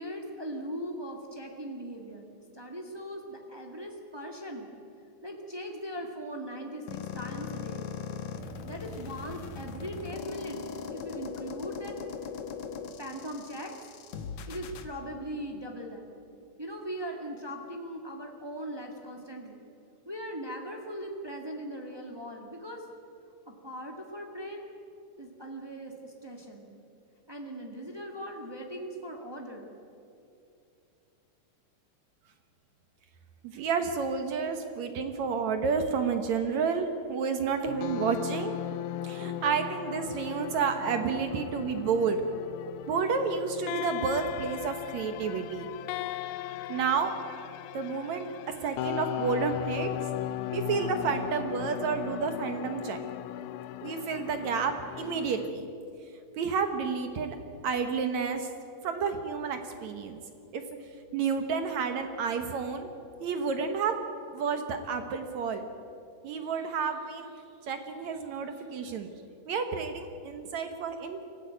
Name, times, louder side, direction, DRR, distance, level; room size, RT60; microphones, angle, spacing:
voice 1, 0.0-4.7 5.2-7.9 8.6-10.6 10.9-12.0 12.9-13.7 14.5-16.1 16.6-19.6 20.0-22.8 23.4-24.7 25.2-26.7 27.3-29.7, equal, 40° right, 1 dB, 0.3 m, -39 dB
sound 1, 6.9-14.9, left 6 dB, 60° left, 2.2 m, -39 dB
voice 2, 33.4-38.6 39.0-42.2 42.9-45.7 46.7-47.1 47.7-48.3 48.6-49.9 50.5-53.0 53.8-55.7 56.4-57.4 57.6-58.5 58.8-60.2 60.5-60.6 61.1-62.9 63.2-63.9 64.3-65.7 66.2-67.3 67.7-69.1 69.5-71.2, right 5 dB, 65° right, 7 dB, 2.1 m, -30 dB
sound 2, 37.7-55.5, left 13 dB, 80° left, 1.8 m, -37 dB
23.5 x 15.0 x 9.3 m, 2.6 s
omnidirectional pair, 4.1 m